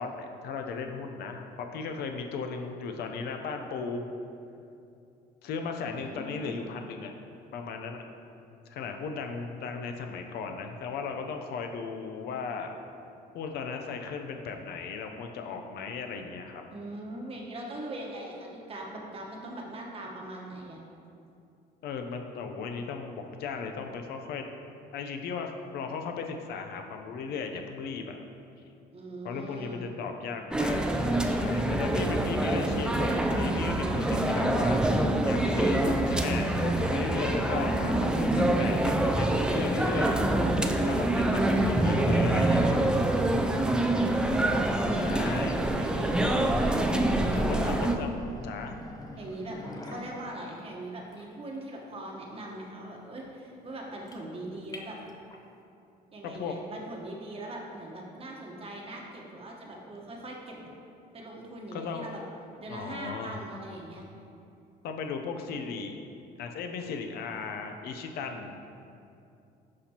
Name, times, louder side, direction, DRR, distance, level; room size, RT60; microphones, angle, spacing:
voice 1, 0.0-4.0 5.4-7.1 7.5-8.0 8.7-12.7 13.3-16.6 21.8-24.5 24.9-28.2 29.2-34.8 35.3-40.2 40.8-42.8 44.9-45.6 47.3-48.1 48.4-48.8 56.3-56.5 61.7-62.1 62.7-63.4 64.8-66.0 66.4-68.5, left 5 dB, 70° left, 4 dB, 0.6 m, -36 dB
voice 2, 5.8-6.5 16.7-20.8 28.9-29.8 41.1-41.7 44.7-46.2 47.2-47.7 49.2-55.0 56.1-60.7 61.1-62.2 62.6-64.0, right 1 dB, 35° right, -1 dB, 1.1 m, -41 dB
sound 1, 30.5-48.0, right 1 dB, 5° right, 0.4 m, -26 dB
sound 2, 44.6-55.5, left 1 dB, 20° left, 0.7 m, -45 dB
11.0 x 4.3 x 2.9 m, 2.6 s
cardioid pair, 110°, 17 cm